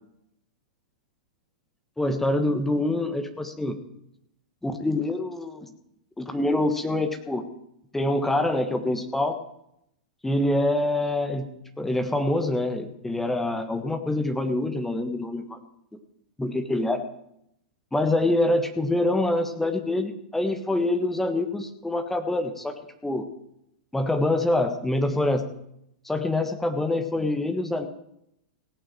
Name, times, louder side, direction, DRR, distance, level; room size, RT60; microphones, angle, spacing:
voice 1, 2.0-3.8 4.6-5.7 6.2-7.5 7.9-9.4 10.2-11.5 11.8-15.6 16.4-17.0 17.9-22.7 23.0-23.3 23.9-25.5 26.0-27.9, left 1 dB, 5° left, 6 dB, 1.4 m, -25 dB
17.0 x 6.3 x 7.5 m, 0.78 s
figure-of-eight pair, 100°, 4 cm